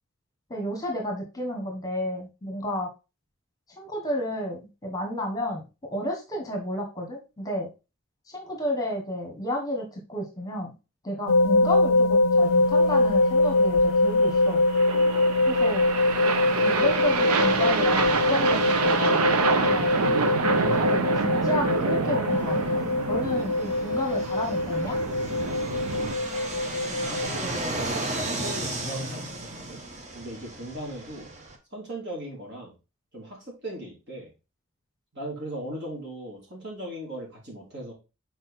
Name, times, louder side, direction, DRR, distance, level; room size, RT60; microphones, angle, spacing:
voice 1, 0.5-2.9 3.8-5.6 5.9-7.7 8.3-10.7 11.0-14.6 15.5-15.9 16.5-19.9 20.6-25.0, left 1 dB, 15° left, 2 dB, 1.3 m, -31 dB
sound 1, 11.3-27.3, left 2 dB, 70° left, 0.4 m, -23 dB
sound 2, 12.8-26.2, right 4 dB, 90° right, 0.8 m, -27 dB
Fixed-wing aircraft airplane, 22.3-31.6, right 2 dB, 30° right, 1.1 m, -35 dB
voice 2, 25.8-29.8 30.1-31.3 31.7-32.7 33.1-34.3 35.1-37.9, right 1 dB, 50° right, -2 dB, 3.5 m, -38 dB
6.5 x 4.6 x 4.3 m, 0.29 s
head